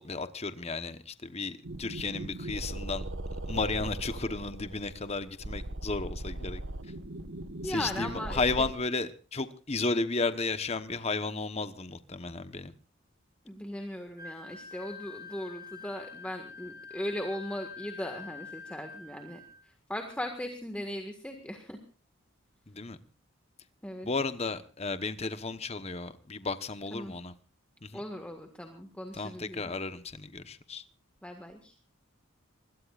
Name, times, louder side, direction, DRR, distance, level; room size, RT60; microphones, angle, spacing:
voice 1, 0.0-3.0 3.5-6.6 7.6-12.7 22.7-23.0 24.0-27.3 27.8-28.0 29.1-30.8, left 3 dB, 30° left, 1.1 m, -33 dB
sound 1, 1.6-8.7, right 1 dB, 65° right, 1.5 m, -39 dB
voice 2, 7.6-8.4 13.4-21.8 23.8-24.1 26.9-27.1 27.9-29.7 31.2-31.7, equal, 5° left, 1.7 m, -38 dB
Wind instrument woodwind instrument, 14.2-19.6, left 5 dB, 20° right, 5.1 m, -46 dB
25.0 x 21.5 x 2.5 m
head